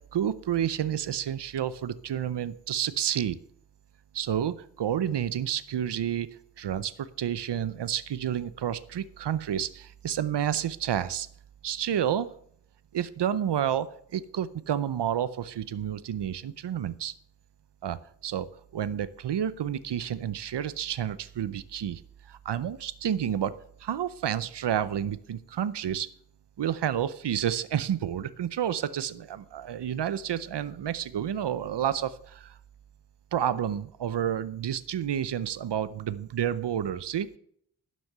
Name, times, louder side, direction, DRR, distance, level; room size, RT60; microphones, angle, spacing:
voice 1, 0.1-3.4 4.1-6.3 6.6-11.3 11.6-12.3 12.9-17.1 17.8-22.0 22.3-26.1 26.6-32.6 33.3-37.4, right 9 dB, 85° right, 16 dB, 0.6 m, -30 dB
12.0 x 6.3 x 6.6 m, 0.66 s
wide cardioid pair, 75°, 40 cm